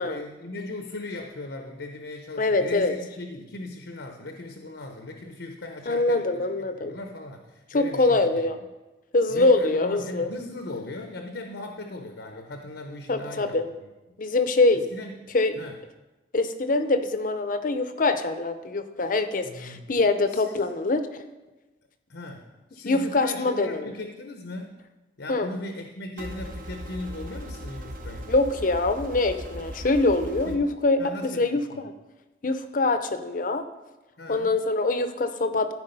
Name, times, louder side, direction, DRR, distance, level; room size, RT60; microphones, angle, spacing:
voice 1, 0.0-6.4 6.8-8.4 9.3-13.9 14.9-15.8 19.4-19.9 20.3-20.6 22.1-24.8 25.2-28.3 30.5-30.7 31.0-31.9 34.2-34.5, left 2 dB, 75° left, 4 dB, 0.8 m, -38 dB
voice 2, 2.4-2.9 5.9-6.9 7.7-8.6 9.1-10.3 13.1-13.7 14.2-14.8 15.3-15.6 16.3-21.0 22.8-23.9 25.3-25.5 28.3-31.9 32.4-33.6 34.3-35.7, left 2 dB, 50° left, 9 dB, 0.7 m, -24 dB
sound 1, 26.2-30.6, equal, 50° right, 0.9 m, -38 dB
14.0 x 4.7 x 5.4 m, 1.1 s
head